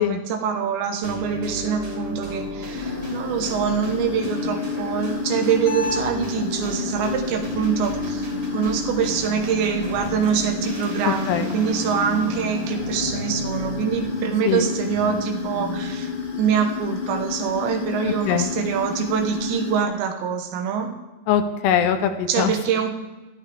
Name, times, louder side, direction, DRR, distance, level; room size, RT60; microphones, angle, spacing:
voice 1, 0.0-16.1 16.4-20.9 22.3-22.9, right 7 dB, 80° right, 4 dB, 3.6 m, -25 dB
sound 1, 1.0-16.1, left 1 dB, 35° right, 3.6 m, -32 dB
sound 2, 2.7-19.8, left 6 dB, 40° left, 1.9 m, -31 dB
voice 2, 11.1-11.5 14.5-14.6 18.1-18.5 21.3-22.5, left 9 dB, 75° left, 8 dB, 2.7 m, -22 dB
19.0 x 13.5 x 3.5 m, 1.2 s
omnidirectional pair, 5.1 m